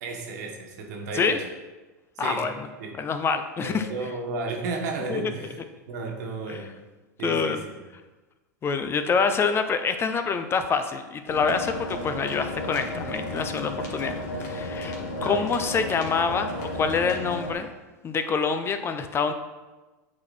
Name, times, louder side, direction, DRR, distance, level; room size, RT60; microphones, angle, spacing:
voice 1, 0.0-1.4 2.2-2.5 2.8-2.9 3.6-5.6 5.9-6.7 7.2-7.8 15.1-15.4, right 3 dB, 70° right, 2 dB, 1.6 m, -33 dB
voice 2, 2.2-2.7 3.0-3.9 5.1-5.3 6.5-6.6 7.2-7.6 8.6-14.9 15.2-17.7 18.0-19.3, left 5 dB, 25° left, 9 dB, 0.6 m, -26 dB
sound 1, 11.3-17.5, left 1 dB, 70° left, 1.8 m, -33 dB
8.6 x 4.2 x 4.3 m, 1.2 s
hypercardioid pair, 110°, 9 cm